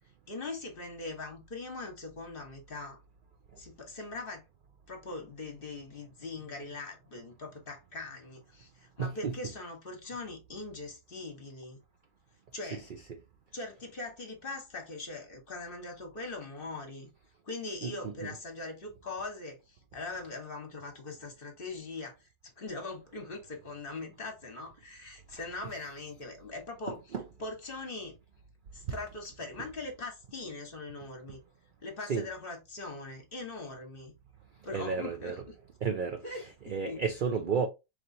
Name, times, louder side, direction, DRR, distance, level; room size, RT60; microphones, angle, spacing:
voice 1, 0.3-3.0 3.6-4.4 4.9-11.8 12.5-12.9 13.5-17.1 17.4-22.2 22.4-27.0 27.4-28.2 28.7-31.4 31.8-34.1 34.6-35.5 36.2-36.4 36.7-37.0, left 3 dB, 40° left, 1.2 m, -41 dB
voice 2, 9.0-9.4 12.7-13.2 17.8-18.3 25.6-25.7 26.9-27.2 28.9-29.0 29.6-29.7 32.0-32.3 34.7-35.4 35.8-37.7, right 6 dB, 75° right, 0.4 m, -33 dB
4.5 x 3.2 x 2.6 m
omnidirectional pair, 1.6 m